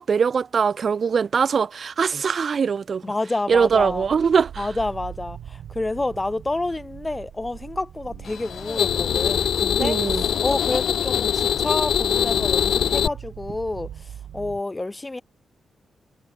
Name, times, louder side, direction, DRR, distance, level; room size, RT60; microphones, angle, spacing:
voice 1, 0.0-3.1 3.5-4.7 9.8-10.2, right 6 dB, 40° right, 0.3 m, -22 dB
voice 2, 3.0-4.1 4.6-10.0 10.4-15.2, left 2 dB, 15° left, 0.7 m, -29 dB
sound 1, 3.4-14.6, right 10 dB, 85° right, 4.9 m, -42 dB
sound 2, 8.3-13.1, left 9 dB, 70° left, 0.3 m, -23 dB
wide cardioid pair, 175°, 0 cm